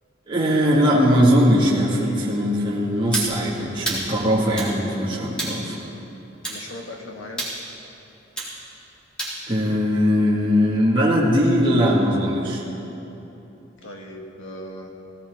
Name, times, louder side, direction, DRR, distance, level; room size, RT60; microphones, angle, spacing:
voice 1, 0.3-5.8 9.5-12.6, equal, 25° right, -6 dB, 2.0 m, -20 dB
sound 1, 3.1-3.3 3.9-4.1 4.6-4.8 5.4-5.6 6.4-6.6 7.4-7.6 8.4-8.5 9.2-9.4, right 1 dB, 5° left, 3.4 m, -28 dB
voice 2, 6.5-7.5 13.8-14.9, left 1 dB, 75° left, 1 dB, 1.8 m, -38 dB
18.0 x 17.5 x 3.7 m, 3.0 s
head